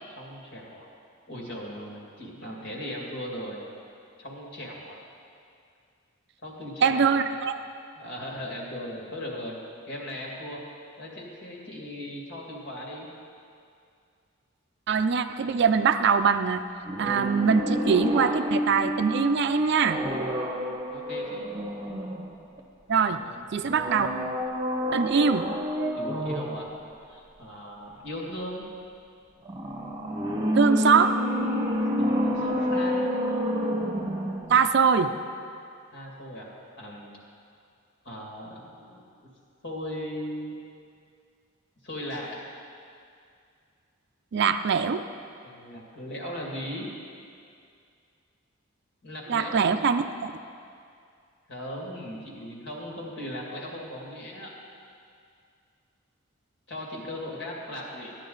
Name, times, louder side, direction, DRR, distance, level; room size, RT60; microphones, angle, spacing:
voice 1, 0.1-0.9 1.3-3.6 4.2-5.0 6.4-7.2 8.0-9.6 9.9-10.6 11.0-13.1 20.9-21.5 23.1-23.4 25.9-26.7 27.1-28.7 32.0-33.1 35.9-36.5 36.8-37.2 38.0-39.1 39.6-40.5 41.8-42.5 45.4-46.9 49.0-49.8 51.5-54.5 56.7-58.2, equal, 60° left, -2 dB, 2.2 m, -38 dB
voice 2, 6.8-7.6 14.9-16.6 17.0-20.0 22.9-23.2 23.5-24.1 24.9-25.5 30.6-31.2 34.5-35.1 44.3-45.0 49.3-50.3, right 6 dB, 55° right, 10 dB, 0.4 m, -23 dB
sound 1, 16.9-22.6 23.7-26.7 29.5-34.7 34.9-35.0, equal, 20° right, 0.9 m, -29 dB
14.0 x 10.0 x 3.9 m, 2.4 s
head